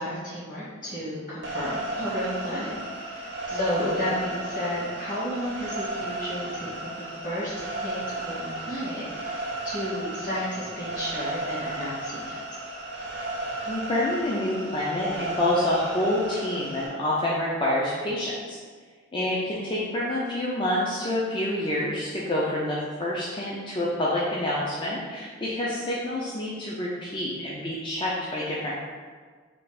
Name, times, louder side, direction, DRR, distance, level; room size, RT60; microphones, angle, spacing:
voice 1, 0.0-12.4, equal, 40° left, -9 dB, 1.5 m, -32 dB
sound 1, 1.4-16.9, right 2 dB, 55° right, 0.6 m, -34 dB
voice 2, 13.7-18.6 19.1-28.7, left 1 dB, 25° left, -6 dB, 0.4 m, -27 dB
3.3 x 2.3 x 4.1 m, 1.5 s
head